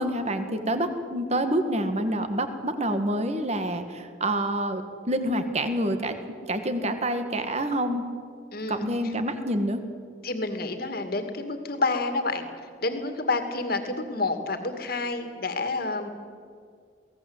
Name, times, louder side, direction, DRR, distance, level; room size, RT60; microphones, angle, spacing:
voice 1, 0.0-4.8 5.1-6.2 6.5-8.1 8.7-9.8, right 1 dB, 35° right, 8 dB, 1.9 m, -27 dB
voice 2, 8.5-9.1 10.2-12.4 12.8-16.1, left 3 dB, 50° left, 7 dB, 2.3 m, -29 dB
23.5 x 17.5 x 8.1 m, 2.2 s
head